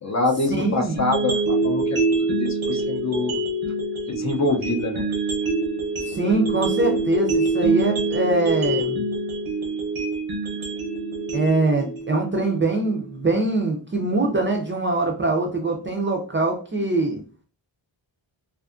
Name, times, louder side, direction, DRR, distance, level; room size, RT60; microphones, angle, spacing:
voice 1, 0.0-2.0 2.4-3.4 4.1-5.1, left 2 dB, 40° left, 3 dB, 0.4 m, -25 dB
voice 2, 0.6-1.0 6.0-9.0 11.3-17.2, right 2 dB, 25° right, 2 dB, 0.4 m, -23 dB
sound 1, 1.0-13.0, right 2 dB, 90° right, 0.9 m, -25 dB
2.5 x 2.4 x 2.4 m, 0.37 s
wide cardioid pair, 115°, 47 cm